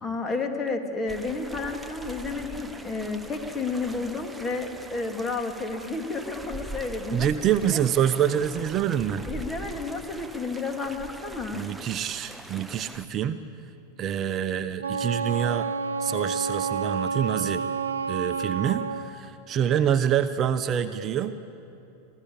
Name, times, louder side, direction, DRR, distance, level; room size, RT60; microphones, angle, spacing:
voice 1, 0.0-7.8 9.3-11.6, left 3 dB, 20° left, 5 dB, 2.4 m, -31 dB
sound 1, 1.1-13.1, right 2 dB, 5° right, 1.0 m, -42 dB
voice 2, 7.1-9.3 11.5-13.4 14.0-15.7 16.0-17.6 18.1-21.3, right 9 dB, 35° right, 10 dB, 0.8 m, -26 dB
Wind instrument woodwind instrument, 14.8-19.1, right 5 dB, 85° right, 0.7 m, -29 dB
23.5 x 15.5 x 8.6 m, 2.8 s
hypercardioid pair, 90°, 0 cm